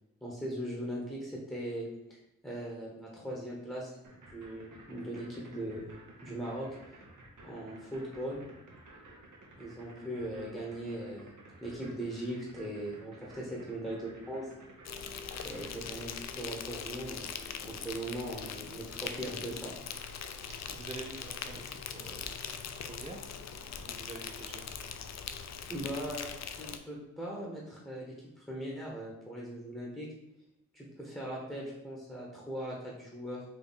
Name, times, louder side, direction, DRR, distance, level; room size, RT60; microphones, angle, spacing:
voice 1, 0.2-1.9 2.4-4.0 4.2-6.0 6.2-6.7 7.4-8.4 9.6-11.3 11.6-14.5 15.4-20.1 25.7-30.1 30.7-33.4, right 1 dB, 5° left, -4 dB, 1.3 m, -39 dB
sound 1, 4.0-15.9, right 2 dB, 75° right, 1.0 m, -54 dB
Insect, 14.9-26.8, left 6 dB, 60° left, 0.4 m, -41 dB
voice 2, 20.5-22.4 22.8-24.7, right 3 dB, 25° right, 2 dB, 0.5 m, -47 dB
4.3 x 2.6 x 4.0 m, 0.86 s
cardioid pair, 50°, 31 cm